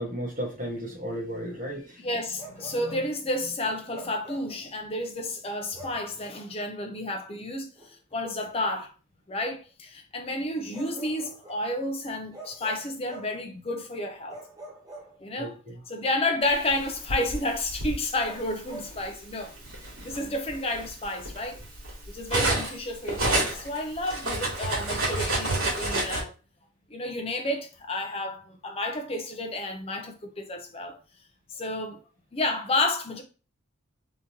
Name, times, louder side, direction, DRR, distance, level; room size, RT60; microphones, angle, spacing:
voice 1, 0.0-2.0 2.6-3.0 15.4-15.8, equal, 40° right, 1.1 m, -34 dB
voice 2, 2.0-7.7 8.1-8.9 9.3-14.4 15.2-15.6 15.9-19.5 20.0-21.6 22.1-26.3 26.9-31.0 31.5-32.0 32.3-33.2, left 1 dB, 25° left, 0.5 m, -31 dB
Bark, 2.4-3.1 3.9-4.6 5.7-6.1 7.8-7.9 10.7-11.7 12.3-13.4 14.3-15.5 18.2-18.9, right 2 dB, 15° right, 0.9 m, -45 dB
Cutlery silverware, 16.7-18.0 18.9-19.1 19.5-22.8 23.1-26.2, right 2 dB, 75° right, 2.1 m, -29 dB
3.7 x 3.0 x 2.7 m
head